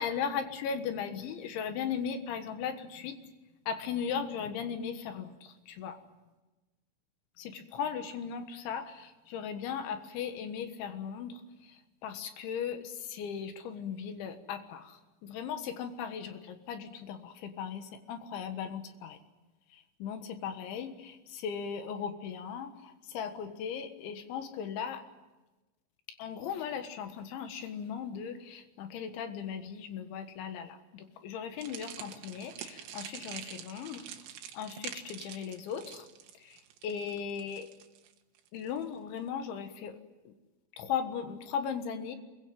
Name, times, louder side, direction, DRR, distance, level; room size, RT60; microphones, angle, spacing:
voice 1, 0.0-3.2 3.7-6.0 7.4-19.2 19.7-25.1 26.2-34.1 34.5-36.1 36.4-37.7 38.5-40.0 40.3-40.4 40.8-42.2, left 7 dB, 75° left, 8 dB, 3.7 m, -37 dB
sound 1, 31.6-38.8, right 10 dB, 70° right, 3.6 m, -46 dB
25.0 x 22.0 x 9.3 m, 1.1 s
omnidirectional pair, 5.7 m